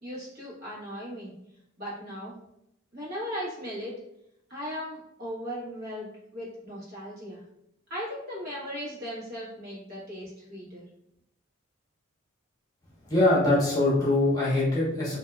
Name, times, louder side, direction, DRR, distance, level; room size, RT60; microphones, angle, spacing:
voice 1, 0.0-1.3 1.8-2.3 2.9-3.9 4.5-7.4 7.9-10.9, equal, 45° right, -7 dB, 1.4 m, -37 dB
voice 2, 13.1-15.2, left 2 dB, 20° left, -8 dB, 1.0 m, -23 dB
3.6 x 2.7 x 2.3 m, 0.79 s
head